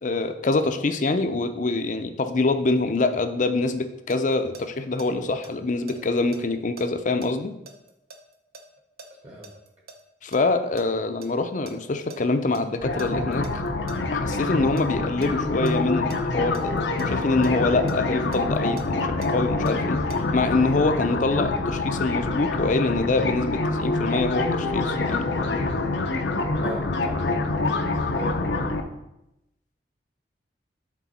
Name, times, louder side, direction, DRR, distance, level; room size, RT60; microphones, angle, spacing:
voice 1, 0.0-7.5 10.2-13.5 14.1-16.7 17.1-20.0 20.3-25.3, left 3 dB, 45° left, 9 dB, 0.5 m, -25 dB
sound 1, 3.9-5.1 5.4-10.0 10.3-12.2 12.5-12.6 13.0-14.4 14.8-15.3 15.7-17.5 17.9-20.2, right 2 dB, 60° right, 0.8 m, -45 dB
sound 2, 12.8-28.8, left 2 dB, 85° left, 0.7 m, -26 dB
voice 2, 26.6-27.3 28.1-28.6, right 2 dB, 35° right, -1 dB, 1.2 m, -36 dB
8.3 x 3.9 x 4.2 m, 0.87 s
head